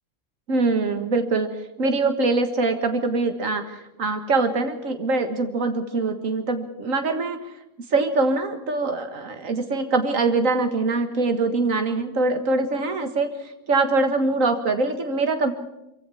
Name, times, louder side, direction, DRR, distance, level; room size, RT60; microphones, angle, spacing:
voice 1, 0.5-1.5 1.8-7.4 7.9-13.3 13.7-15.5, right 3 dB, 90° right, 7 dB, 2.0 m, -23 dB
24.5 x 16.0 x 7.1 m, 0.92 s
omnidirectional pair, 1.3 m